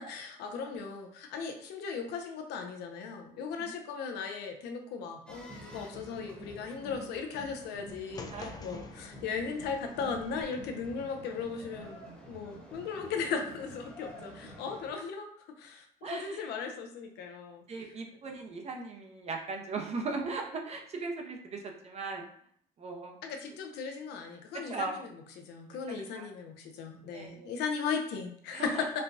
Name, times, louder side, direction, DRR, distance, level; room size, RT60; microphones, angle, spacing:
voice 1, 0.0-15.3 15.6-17.6 23.2-29.0, left 5 dB, 80° left, 4 dB, 0.6 m, -37 dB
sound 1, 5.3-14.9, equal, 5° left, 1.0 m, -49 dB
sound 2, 8.1-10.4, left 4 dB, 25° left, 0.4 m, -47 dB
voice 2, 16.0-16.4 17.7-22.2 22.8-23.1 24.7-24.9 26.1-26.3 27.1-27.5 28.5-28.8, right 3 dB, 40° right, 2 dB, 0.7 m, -38 dB
4.3 x 2.2 x 2.6 m, 0.64 s
cardioid pair, 110°, 17 cm